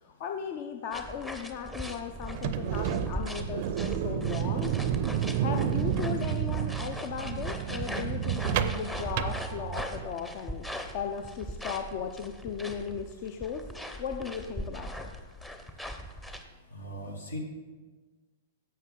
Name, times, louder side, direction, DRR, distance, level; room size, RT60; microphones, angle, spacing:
voice 1, 0.0-4.8 5.4-10.7 10.9-13.6 14.0-15.1, left 7 dB, 40° left, 6 dB, 0.5 m, -36 dB
sound 1, 0.9-16.5, equal, 10° left, 0.7 m, -40 dB
sound 2, 2.2-10.1, right 10 dB, 45° right, 0.5 m, -31 dB
voice 2, 16.7-17.4, equal, 75° left, 2 dB, 1.7 m, -39 dB
11.0 x 7.6 x 3.8 m, 1.3 s
figure-of-eight pair, 105°, 0 cm